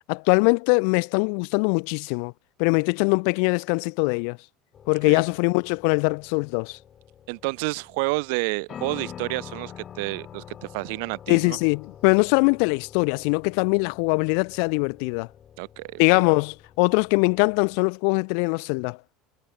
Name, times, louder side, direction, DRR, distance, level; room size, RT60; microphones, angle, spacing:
voice 1, 0.1-2.3 2.6-4.4 4.9-6.8 11.3-15.3 16.0-19.0, left 40 dB or more, 60° left, 0.5 m, -22 dB
sound 1, 4.7-17.8, left 9 dB, 25° left, 1.2 m, -46 dB
voice 2, 7.3-11.6 15.6-16.0, right 32 dB, 65° right, 1.7 m, -30 dB
cardioid pair, 175°, 0 cm